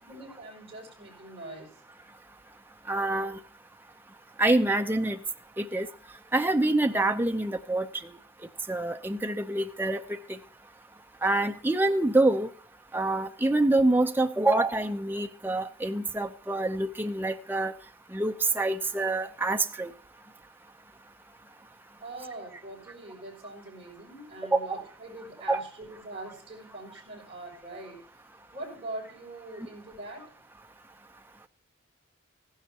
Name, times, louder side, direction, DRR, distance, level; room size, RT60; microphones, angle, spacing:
voice 1, 0.0-1.7 22.0-28.0 28.5-30.3, right 2 dB, 30° right, -3 dB, 6.4 m, -43 dB
voice 2, 2.9-3.4 4.4-5.2 5.6-5.9 6.3-7.9 8.7-10.0 10.3-10.4 11.2-12.5 12.9-17.7 18.1-19.9 24.5-24.6 25.5-25.6, right 2 dB, 10° right, 5 dB, 0.6 m, -26 dB
15.0 x 12.0 x 2.8 m, 0.43 s
head